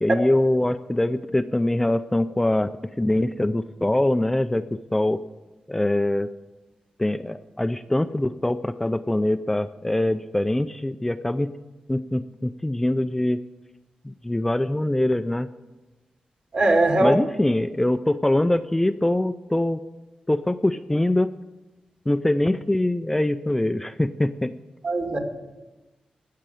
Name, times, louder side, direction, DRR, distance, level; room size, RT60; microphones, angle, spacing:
voice 1, 0.0-2.7 3.0-5.2 5.7-6.3 7.0-11.5 11.9-13.4 14.0-15.5 17.0-19.8 20.3-21.3 22.1-24.5, left 1 dB, 10° left, 9 dB, 0.4 m, -23 dB
voice 2, 16.5-17.2 24.8-25.2, right 2 dB, 50° right, 3 dB, 2.3 m, -20 dB
17.0 x 6.6 x 8.6 m, 1.1 s
wide cardioid pair, 120°, 3 cm